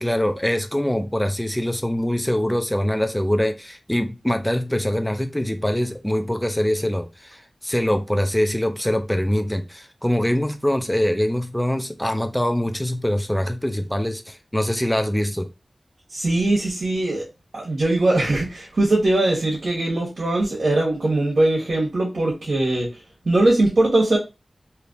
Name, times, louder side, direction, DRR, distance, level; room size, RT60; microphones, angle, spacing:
voice 1, 0.0-15.5, left 1 dB, 10° left, 0.6 m, -23 dB
voice 2, 16.1-17.2 17.5-22.9 23.2-24.2, right 2 dB, 80° right, 1.2 m, -20 dB
3.3 x 2.7 x 2.6 m
cardioid pair, 45°, 0 cm